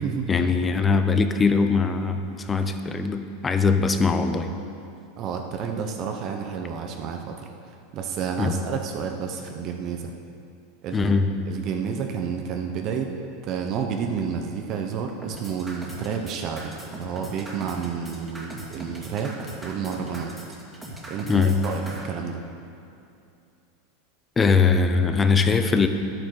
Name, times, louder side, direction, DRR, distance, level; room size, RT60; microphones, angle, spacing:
voice 1, 0.3-4.5 8.4-8.6 10.9-11.3 21.3-21.6 24.4-25.9, left 4 dB, 15° left, 8 dB, 0.7 m, -21 dB
voice 2, 5.2-7.5 7.9-10.1 10.8-11.1 11.5-13.1 13.4-20.3 21.1-22.4, right 6 dB, 40° right, 3 dB, 0.9 m, -30 dB
sound 1, 15.2-22.0, right 1 dB, 5° right, 2.2 m, -39 dB
11.0 x 8.9 x 6.6 m, 2.6 s
supercardioid pair, 145°, 0 cm